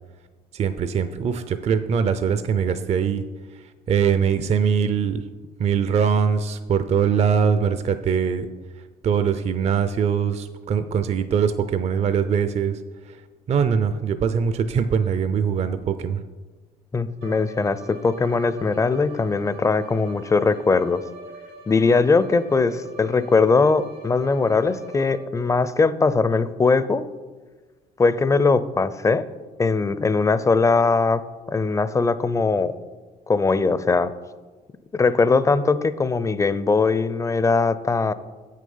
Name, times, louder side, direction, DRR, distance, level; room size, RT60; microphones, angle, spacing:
voice 1, 0.5-3.2 3.6-5.2 5.6-8.5 9.0-12.8 13.1-13.2 13.5-16.2, right 7 dB, 40° right, 10 dB, 0.5 m, -22 dB
voice 2, 16.9-21.0 21.7-27.1 28.0-29.2 29.6-31.2 31.5-32.7 33.3-34.1 34.9-38.1, left 4 dB, 20° left, 14 dB, 0.5 m, -20 dB
Bowed string instrument, 17.2-25.5, right 2 dB, 80° right, 2.9 m, -43 dB
8.2 x 6.5 x 5.5 m, 1.3 s
cardioid pair, 100°, 17 cm